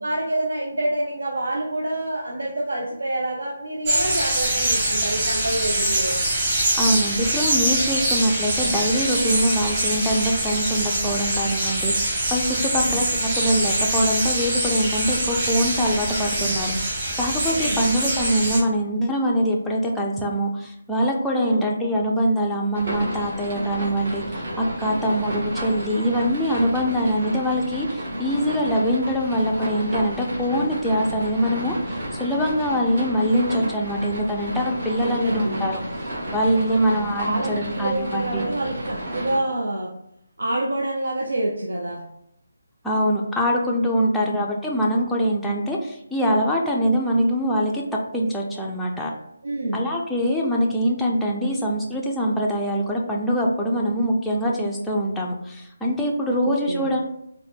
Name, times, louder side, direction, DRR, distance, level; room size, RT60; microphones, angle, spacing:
voice 1, 0.0-6.2 12.6-13.0 17.5-17.8 21.4-21.7 24.9-25.2 34.9-35.5 36.6-39.9 40.4-42.0 44.1-44.4 49.4-49.9 56.3-56.9, right 1 dB, 80° right, -1 dB, 0.6 m, -27 dB
sound 1, 3.8-18.6, right 1 dB, 25° right, 1.1 m, -24 dB
voice 2, 6.8-35.8 36.3-38.5 42.8-47.8 48.1-49.1 49.7-57.0, equal, 5° left, -4 dB, 0.4 m, -23 dB
sound 2, 22.7-39.4, equal, 55° right, 1.4 m, -32 dB
4.1 x 2.1 x 3.4 m, 0.77 s
figure-of-eight pair, 165°, 0 cm